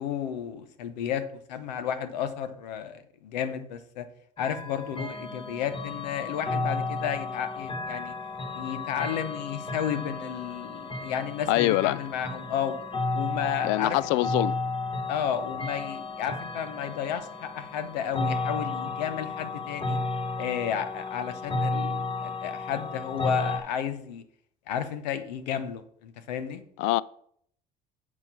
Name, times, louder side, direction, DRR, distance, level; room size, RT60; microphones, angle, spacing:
voice 1, 0.0-4.1 4.4-8.1 8.5-12.8 13.1-14.0 15.1-20.0 20.4-24.2 24.7-26.6, left 8 dB, 80° left, 0.8 m, -32 dB
sound 1, 4.4-23.6, left 3 dB, 25° left, 1.5 m, -33 dB
voice 2, 11.5-12.0 13.6-14.5 26.8-27.0, left 17 dB, 65° left, 0.4 m, -24 dB
8.8 x 4.4 x 5.7 m
hypercardioid pair, 65°, 21 cm